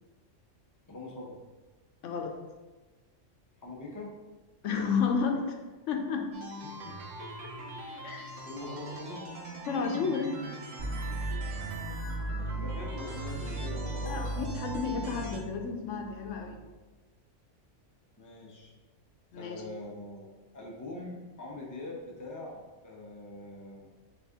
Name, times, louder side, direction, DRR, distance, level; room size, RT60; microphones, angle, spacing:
voice 1, 0.9-1.4 3.6-4.1 6.8-7.0 8.4-9.3 12.2-14.3 18.2-18.7 19.3-23.9, left 2 dB, 20° left, -2 dB, 0.6 m, -43 dB
voice 2, 2.0-2.4 4.6-5.6 5.9-6.3 8.0-8.3 9.7-10.3 14.1-16.6 19.3-19.6, left 5 dB, 80° left, 3 dB, 0.9 m, -31 dB
sound 1, 6.3-15.4, right 2 dB, 85° right, 1.2 m, -42 dB
sound 2, 10.8-16.7, right 2 dB, 45° right, 1.2 m, -37 dB
4.1 x 3.4 x 3.5 m, 1.2 s
omnidirectional pair, 1.3 m